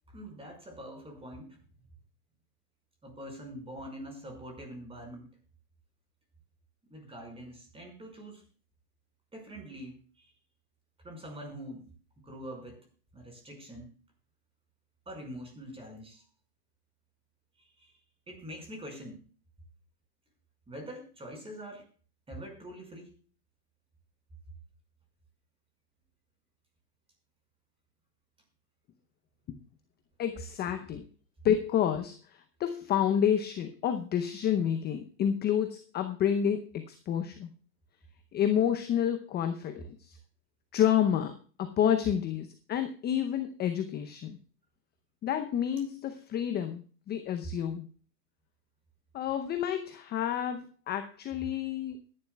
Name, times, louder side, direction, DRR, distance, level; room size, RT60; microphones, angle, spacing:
voice 1, 0.1-1.6 3.0-5.3 6.9-8.4 9.3-10.3 11.0-11.8 12.2-12.8 13.1-13.9 15.0-16.2 17.6-17.9 18.3-19.2 20.7-21.8 22.3-23.2, equal, 10° right, 3 dB, 5.2 m, -44 dB
voice 2, 30.2-31.1 31.4-37.5 38.3-40.2 40.7-41.3 41.6-44.4 45.2-47.9 49.1-52.0, left 9 dB, 20° left, 8 dB, 0.7 m, -29 dB
21.0 x 11.0 x 2.3 m, 0.39 s
hypercardioid pair, 115°, 49 cm